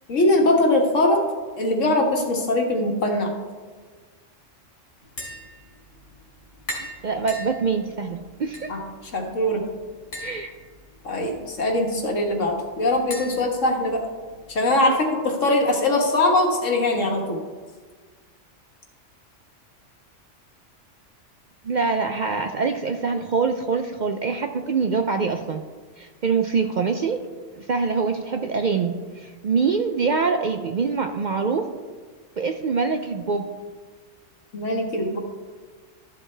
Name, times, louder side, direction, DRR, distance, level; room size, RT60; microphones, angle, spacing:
voice 1, 0.1-1.2 1.6-3.3 8.7-8.8 9.1-9.6 11.1-14.0 14.5-15.0 15.2-17.4 34.5-35.2, left 1 dB, 85° left, 2 dB, 1.8 m, -21 dB
Tap, 5.0-14.5, left 1 dB, 65° left, 3.2 m, -41 dB
voice 2, 6.8-8.7 10.2-10.5 14.9-15.0 21.6-25.6 26.0-27.2 27.5-31.7 32.4-33.5, right 5 dB, 60° right, 6 dB, 0.5 m, -24 dB
13.0 x 7.3 x 3.3 m, 1.5 s
omnidirectional pair, 1.3 m